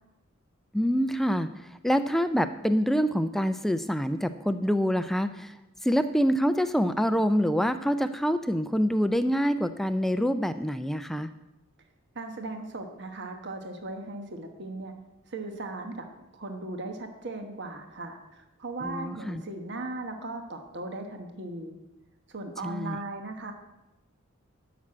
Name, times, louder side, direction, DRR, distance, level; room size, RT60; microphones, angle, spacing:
voice 1, 0.7-1.5 1.8-5.5 5.8-11.3 18.8-19.4 22.6-23.0, equal, ahead, 10 dB, 0.4 m, -26 dB
voice 2, 12.1-14.9 15.3-16.1 16.3-21.7 22.3-23.5, right 2 dB, 60° right, 5 dB, 1.2 m, -37 dB
12.5 x 6.1 x 8.6 m, 0.99 s
head